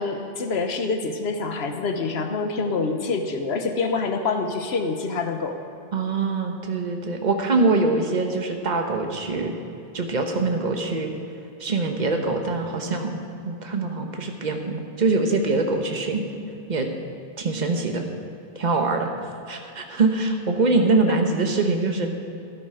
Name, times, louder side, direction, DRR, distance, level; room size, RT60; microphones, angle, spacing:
voice 1, 0.0-5.6, left 4 dB, 80° left, 5 dB, 1.2 m, -26 dB
voice 2, 5.9-9.5 9.9-11.1 11.6-13.2 13.4-16.2 16.7-16.9 17.4-18.0 18.5-19.1 19.5-22.1, right 3 dB, 45° right, 3 dB, 1.3 m, -23 dB
13.5 x 12.0 x 5.0 m, 2.7 s
omnidirectional pair, 1.0 m